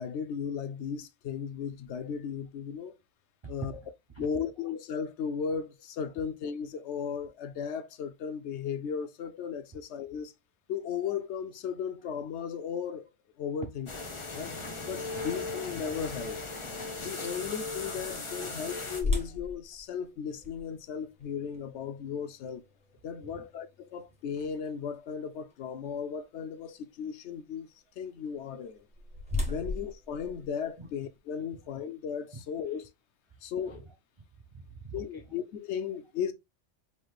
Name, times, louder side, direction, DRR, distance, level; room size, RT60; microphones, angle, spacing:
voice 1, 0.0-3.0 3.5-3.7 4.2-10.3 10.7-13.1 13.4-13.9 14.3-14.6 14.9-16.4 17.0-22.6 23.0-28.9 29.5-32.9 33.4-33.9 34.9-36.3, left 7 dB, 70° left, 0.8 m, -36 dB
voice 2, 3.4-3.9 4.1-4.3 14.3-14.4 17.4-17.5 19.3-19.4 23.2-23.5 30.8-30.9 32.3-32.4 33.3-35.4, right 4 dB, 45° right, 0.3 m, -46 dB
sound 1, 13.9-19.0, left 3 dB, 25° left, 0.8 m, -37 dB
sound 2, 19.0-25.0 25.5-25.6 26.2-26.4 28.5-31.2, left 3 dB, 5° right, 1.1 m, -37 dB
5.6 x 3.1 x 2.3 m
omnidirectional pair, 1.3 m